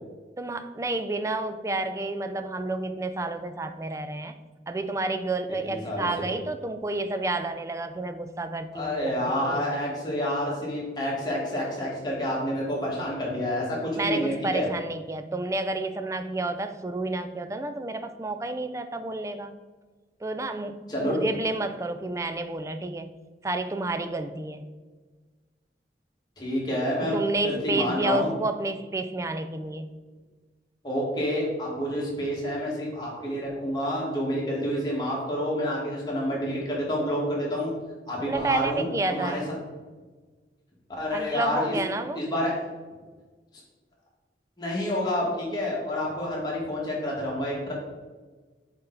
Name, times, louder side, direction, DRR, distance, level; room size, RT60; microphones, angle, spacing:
voice 1, 0.4-4.3 4.7-9.6 14.0-19.5 20.2-23.1 23.4-24.7 27.0-29.9 38.2-39.5 41.1-42.2, right 2 dB, 15° right, 9 dB, 0.3 m, -30 dB
voice 2, 5.6-6.3 8.7-14.7 20.9-21.1 26.4-27.1 27.4-28.3 30.8-37.7 38.1-39.4 41.0-41.8 42.1-42.6 44.6-47.7, equal, 25° left, -4 dB, 1.8 m, -28 dB
6.8 x 4.4 x 3.9 m, 1.4 s
head